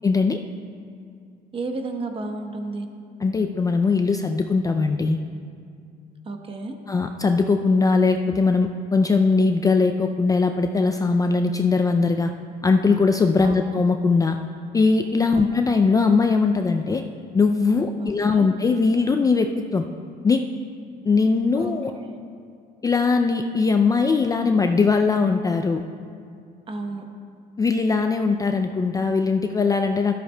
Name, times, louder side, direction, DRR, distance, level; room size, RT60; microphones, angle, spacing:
voice 1, 0.0-0.4 3.2-5.2 6.9-12.3 12.6-14.4 14.7-17.0 17.3-19.9 20.2-20.4 21.1-21.9 22.8-25.8 27.6-30.1, left 4 dB, 20° left, 6 dB, 0.3 m, -20 dB
voice 2, 1.5-2.9 6.2-6.8 13.4-13.6 15.3-15.5 18.0-18.5 21.5-22.2 26.7-27.1, right 3 dB, 30° right, 4 dB, 1.0 m, -32 dB
12.5 x 11.5 x 2.2 m, 2.4 s
cardioid pair, 110°, 17 cm